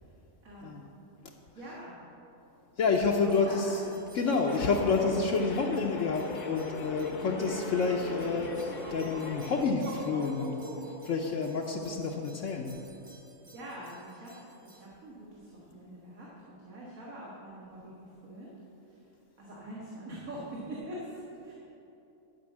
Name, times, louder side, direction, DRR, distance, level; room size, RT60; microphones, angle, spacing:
voice 1, 0.4-0.8 1.5-2.0 3.4-3.8 4.9-5.0 13.5-14.3 14.6-18.5 18.9-19.0 19.4-21.5, right 1 dB, 85° right, -5 dB, 2.0 m, -44 dB
voice 2, 2.8-3.9 4.1-12.9, left 4 dB, 70° left, 0 dB, 1.0 m, -29 dB
sound 1, 2.9-14.8, right 2 dB, 25° right, 1.1 m, -46 dB
sound 2, 4.5-9.6, left 3 dB, 45° left, 0.8 m, -41 dB
12.0 x 5.3 x 7.3 m, 2.9 s
omnidirectional pair, 1.4 m